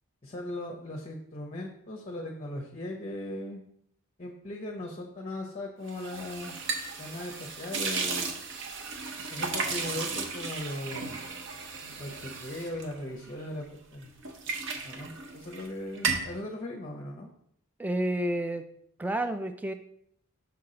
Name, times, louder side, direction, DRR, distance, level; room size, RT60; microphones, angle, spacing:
voice 1, 0.2-3.6 4.2-6.6 7.0-8.3 9.3-11.3 12.0-13.6 13.9-14.1 14.8-17.3, left 1 dB, 30° left, 2 dB, 0.7 m, -38 dB
sound 1, 5.9-13.6 14.0-15.7 15.9-16.4, right 4 dB, 55° right, 0.8 m, -35 dB
voice 2, 17.8-18.6 19.0-19.7, right 1 dB, 5° right, 9 dB, 0.3 m, -30 dB
5.8 x 5.8 x 3.8 m, 0.72 s
head